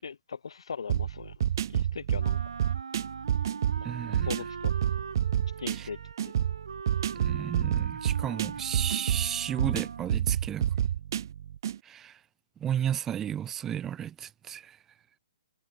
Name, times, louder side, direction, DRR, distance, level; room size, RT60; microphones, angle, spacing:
voice 1, 0.0-1.3 1.7-2.4 3.8-3.9 4.2-4.7 5.6-6.0 6.2-6.3, left 6 dB, 80° left, 5.4 m, -39 dB
sound 1, 0.9-11.8, right 10 dB, 45° right, 0.5 m, -29 dB
Wind instrument woodwind instrument, 2.2-10.3, right 5 dB, 85° right, 4.9 m, -42 dB
voice 2, 3.8-4.3 5.7-5.9 7.2-10.7 11.8-12.2 12.6-14.8, right 10 dB, 10° right, 1.8 m, -33 dB
hypercardioid pair, 165°, 3 cm